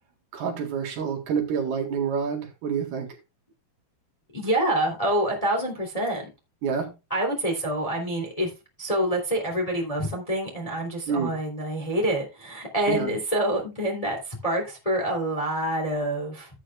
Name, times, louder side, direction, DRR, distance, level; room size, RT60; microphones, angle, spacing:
voice 1, 0.3-3.1 6.6-6.9 11.1-11.3 12.9-13.1, right 6 dB, 65° right, 3.6 m, -28 dB
voice 2, 4.3-6.2 7.1-8.5 8.8-16.5, right 1 dB, 10° left, 2.4 m, -26 dB
14.0 x 8.8 x 2.4 m
omnidirectional pair, 4.9 m